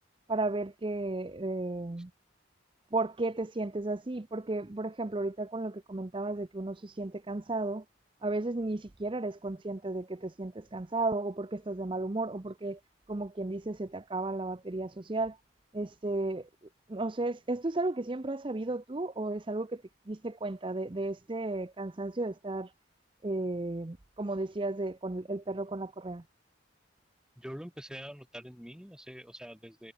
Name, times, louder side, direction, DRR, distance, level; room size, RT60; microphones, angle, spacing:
voice 1, 0.3-2.1 2.9-7.8 8.2-12.8 13.1-15.4 15.7-16.5 16.9-22.7 23.2-26.2, right 2 dB, 25° right, 0.6 m, -34 dB
voice 2, 27.4-29.9, equal, 5° right, 2.5 m, -45 dB
head